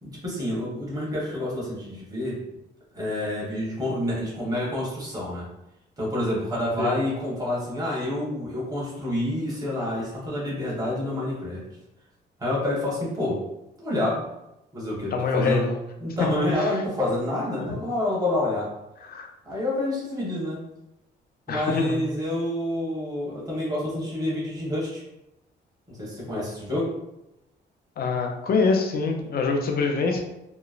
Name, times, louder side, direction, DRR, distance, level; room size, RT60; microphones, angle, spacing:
voice 1, 0.0-2.4 2.9-5.5 6.0-11.6 12.4-13.4 13.8-14.2 14.7-15.7 16.0-18.7 19.4-20.6 21.5-25.0 25.9-26.9, left 1 dB, 20° right, -6 dB, 1.2 m, -28 dB
voice 2, 15.1-15.8 16.2-16.3 16.6-16.8 19.0-19.3 21.5-22.0 28.0-30.2, left 4 dB, 50° left, 3 dB, 0.5 m, -25 dB
2.9 x 2.1 x 2.4 m, 0.89 s
cardioid pair, 90°, 20 cm